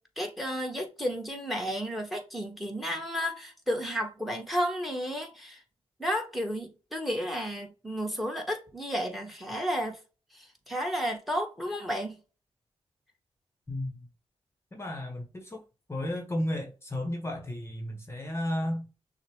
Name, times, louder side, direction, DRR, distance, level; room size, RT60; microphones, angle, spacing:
voice 1, 0.2-5.6 6.0-10.0 10.3-12.2, equal, ahead, 1.2 m, -32 dB
voice 2, 14.7-15.6 15.9-18.9, left 1 dB, 25° left, 0.9 m, -33 dB
6.3 x 2.1 x 3.1 m
wide cardioid pair, 105°, 11 cm